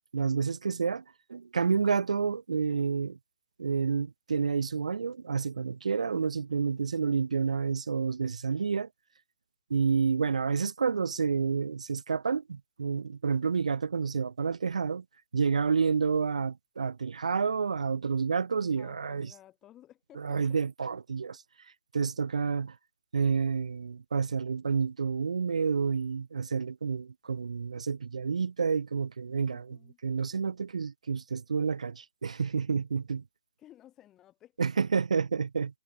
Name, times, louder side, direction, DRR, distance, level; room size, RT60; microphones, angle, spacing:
voice 1, 0.1-1.0 1.3-3.2 3.6-8.9 9.7-15.0 15.3-19.3 20.2-21.4 21.9-22.8 23.1-29.8 30.0-33.2 34.6-35.8, right 5 dB, 80° right, 0.7 m, -29 dB
voice 2, 18.8-20.6 29.4-30.0 33.6-34.8, left 12 dB, 10° left, 3.0 m, -56 dB
hypercardioid pair, 175°, 4 cm